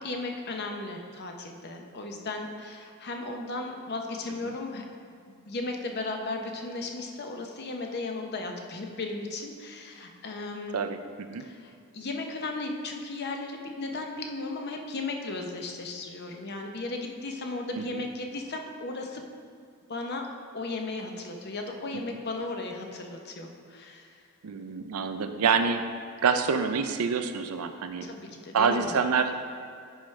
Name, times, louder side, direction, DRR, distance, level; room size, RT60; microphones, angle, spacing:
voice 1, 0.0-4.8 5.3-10.9 11.4-19.2 19.9-20.3 20.5-24.2 28.0-29.0, left 2 dB, 50° left, 2 dB, 0.7 m, -36 dB
voice 2, 10.7-11.5 17.8-18.0 21.9-22.2 24.4-25.8 26.2-28.1 28.5-29.3, right 5 dB, 80° right, 8 dB, 0.5 m, -27 dB
10.0 x 4.8 x 3.2 m, 2.4 s
head